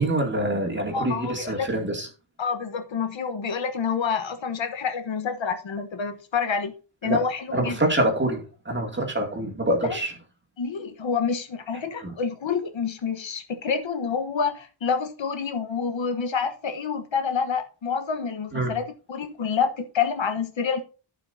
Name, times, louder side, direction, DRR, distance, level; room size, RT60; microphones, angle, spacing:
voice 1, 0.0-2.1 7.0-7.2 7.5-10.1 12.0-12.1 18.5-18.7, right 1 dB, 20° right, 2.5 m, -25 dB
voice 2, 0.9-1.7 2.4-6.7 7.0-7.7 9.8-10.0 10.6-18.8 19.1-20.8, left 6 dB, 65° left, 1.2 m, -28 dB
14.5 x 6.0 x 2.7 m
wide cardioid pair, 135°, 49 cm